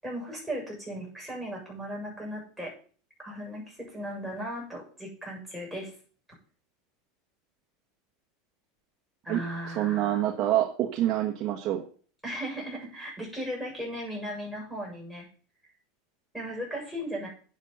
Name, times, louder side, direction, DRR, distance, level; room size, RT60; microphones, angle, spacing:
voice 1, 0.0-2.7 3.2-5.9 9.2-10.3 12.2-15.3 16.3-17.3, equal, ahead, -4 dB, 7.5 m, -37 dB
voice 2, 9.7-11.8, right 12 dB, 40° right, 1 dB, 1.5 m, -26 dB
11.0 x 8.0 x 5.6 m, 0.42 s
supercardioid pair, 150°, 0 cm